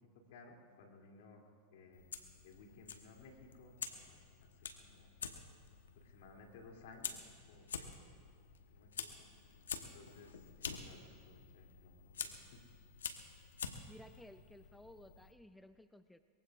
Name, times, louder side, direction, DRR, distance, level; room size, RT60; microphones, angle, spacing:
voice 1, 0.3-2.0 2.4-4.5 4.8-5.1 6.0-8.1 8.7-9.3 9.8-12.6, left 3 dB, 70° left, 1 dB, 2.8 m, -59 dB
Fire, 1.9-15.3, left 6 dB, 85° left, 1.1 m, -48 dB
voice 2, 13.8-16.2, left 1 dB, 5° left, 10 dB, 0.5 m, -57 dB
23.0 x 22.5 x 2.5 m, 2.1 s
hypercardioid pair, 100°, 0 cm